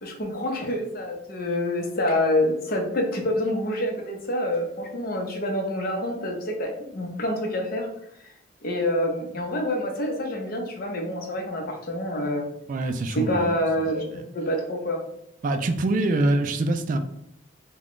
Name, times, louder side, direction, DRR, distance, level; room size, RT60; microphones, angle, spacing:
voice 1, 0.0-7.9 8.2-8.3 8.6-12.5 13.1-15.0, left 1 dB, 50° left, 2 dB, 0.7 m, -27 dB
voice 2, 12.7-14.3 15.4-17.0, right 2 dB, 45° right, 8 dB, 0.3 m, -25 dB
3.7 x 2.3 x 3.6 m, 0.75 s
head